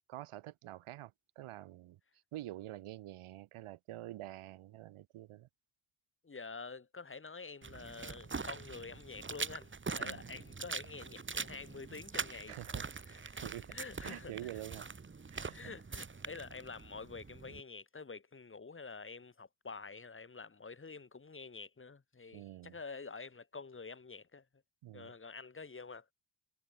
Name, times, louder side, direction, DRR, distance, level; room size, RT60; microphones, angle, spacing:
voice 1, 0.1-2.0 2.3-5.5 10.0-10.3 12.5-12.9 13.2-14.9 15.3-15.6 22.3-22.7 24.8-25.1, right 14 dB, 85° right, 2.8 m, -47 dB
voice 2, 6.2-12.6 13.1-13.4 13.7-14.3 15.5-24.4 24.9-26.1, left 4 dB, 25° left, 7.5 m, -48 dB
sound 1, 7.6-17.6, right 4 dB, 25° right, 3.9 m, -43 dB
cardioid pair, 135°, 49 cm